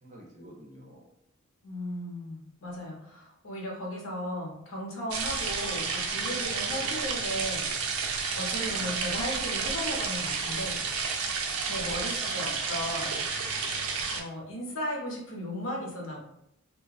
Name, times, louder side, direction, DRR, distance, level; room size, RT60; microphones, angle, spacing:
voice 1, 0.0-1.0 6.7-7.1 8.6-8.9 11.7-12.1, equal, 35° right, -1 dB, 0.5 m, -49 dB
voice 2, 1.6-7.9 8.3-10.8 11.6-13.3 14.1-16.2, equal, 70° left, -2 dB, 0.8 m, -36 dB
sound 1, 5.1-14.2, right 5 dB, 90° right, 0.4 m, -31 dB
2.8 x 2.2 x 2.4 m, 0.75 s
head